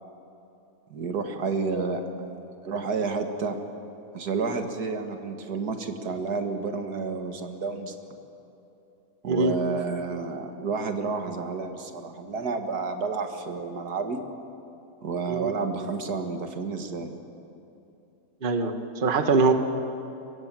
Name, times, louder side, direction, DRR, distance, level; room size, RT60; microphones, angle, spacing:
voice 1, 0.9-2.4 2.6-3.6 4.1-8.0 9.2-14.2 15.0-17.2, right 4 dB, 80° right, 6 dB, 2.1 m, -30 dB
voice 2, 18.4-19.5, right 4 dB, 35° right, 7 dB, 1.4 m, -23 dB
23.5 x 22.0 x 7.5 m, 2.8 s
omnidirectional pair, 1.6 m